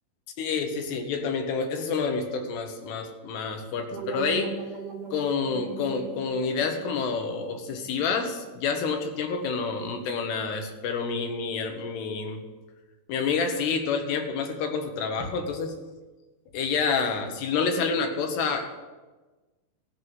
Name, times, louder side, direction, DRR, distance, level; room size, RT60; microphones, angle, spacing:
voice 1, 0.4-4.6 5.1-12.4 13.1-15.7 16.5-18.7, left 5 dB, 85° left, 4 dB, 3.3 m, -28 dB
sound 1, 3.9-8.8, right 6 dB, 65° right, 2.3 m, -40 dB
15.0 x 5.6 x 7.8 m, 1.2 s
omnidirectional pair, 4.7 m